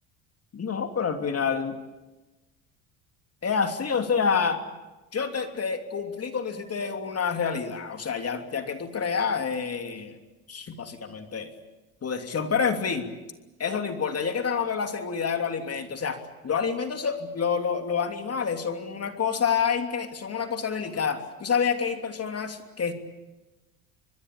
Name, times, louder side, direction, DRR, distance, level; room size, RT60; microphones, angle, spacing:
voice 1, 0.5-1.8 3.4-4.6 5.1-10.2 10.5-11.5 12.0-13.1 13.6-16.2 16.4-22.9, left 6 dB, 35° left, 6 dB, 3.1 m, -28 dB
25.0 x 22.0 x 8.6 m, 1.1 s
hypercardioid pair, 75°, 43 cm